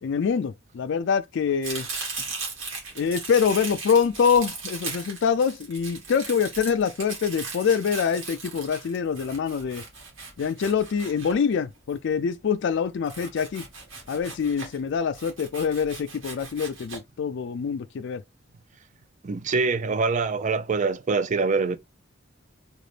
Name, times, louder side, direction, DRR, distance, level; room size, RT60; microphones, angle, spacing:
voice 1, 0.0-1.9 3.0-9.8 10.4-13.6 14.1-18.2, left 6 dB, 65° left, 0.4 m, -25 dB
Domestic sounds home sounds, 1.6-11.9 13.0-14.8 15.1-17.0, right 4 dB, 75° right, 1.8 m, -38 dB
voice 2, 19.2-21.8, right 4 dB, 40° right, 0.4 m, -24 dB
3.9 x 2.5 x 3.3 m
head